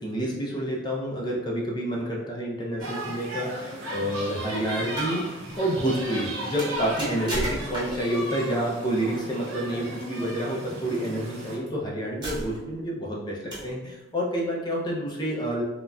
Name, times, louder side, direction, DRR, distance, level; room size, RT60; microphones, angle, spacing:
voice 1, 0.0-15.6, right 1 dB, 20° left, -3 dB, 0.5 m, -29 dB
sound 1, 2.8-11.6, right 1 dB, 75° right, 0.7 m, -36 dB
sound 2, 4.8-5.2 6.6-8.1 9.4-9.7 10.9-11.1 11.7-11.8 12.2-12.8 13.5-13.8, equal, 20° right, 0.9 m, -33 dB
3.8 x 2.1 x 2.3 m, 1.1 s
head